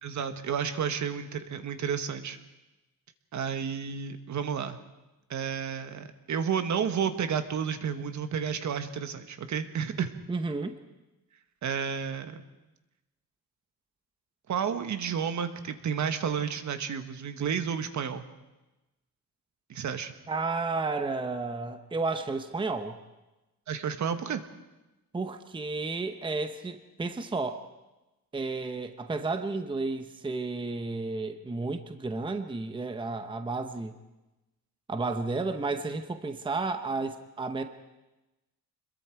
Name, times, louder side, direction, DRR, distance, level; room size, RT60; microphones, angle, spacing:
voice 1, 0.0-2.4 3.3-4.8 5.3-10.1 11.6-12.4 14.5-18.2 19.7-20.1 23.7-24.4, right 7 dB, 55° right, 9 dB, 1.4 m, -31 dB
voice 2, 10.3-10.8 20.3-23.0 25.1-27.6 28.3-33.9 34.9-37.6, right 3 dB, 15° right, 8 dB, 0.9 m, -32 dB
26.0 x 21.5 x 4.7 m, 1.0 s
cardioid pair, 145°, 34 cm